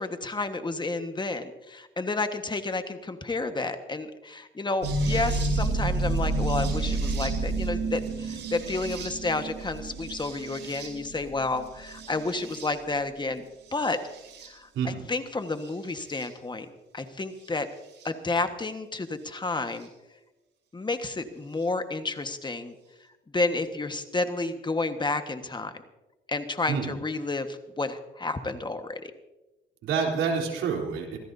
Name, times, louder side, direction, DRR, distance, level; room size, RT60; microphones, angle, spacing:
voice 1, 0.0-13.4 13.7-14.0 14.5-16.7 16.9-17.7 18.0-19.9 20.7-22.7 23.3-25.7 26.3-29.1, left 3 dB, 25° left, 8 dB, 1.5 m, -31 dB
sound 1, 4.8-13.0 13.7-14.5 15.6-16.3 18.0-18.1 19.8-19.9, right 2 dB, 65° right, 5.3 m, -30 dB
voice 2, 29.8-31.2, right 6 dB, 85° right, -1 dB, 3.8 m, -28 dB
25.0 x 16.0 x 2.7 m, 1.1 s
cardioid pair, 90°, 20 cm